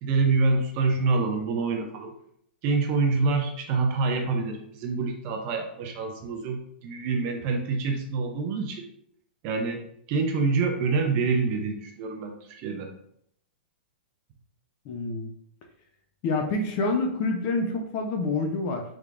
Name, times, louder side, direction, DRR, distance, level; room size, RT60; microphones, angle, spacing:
voice 1, 0.0-2.1 2.6-8.9 9.4-12.9, right 4 dB, 25° right, 3 dB, 0.5 m, -26 dB
voice 2, 14.9-15.3 16.2-18.8, left 3 dB, 25° left, 4 dB, 0.5 m, -27 dB
4.8 x 3.4 x 2.5 m, 0.69 s
hypercardioid pair, 170°, 6 cm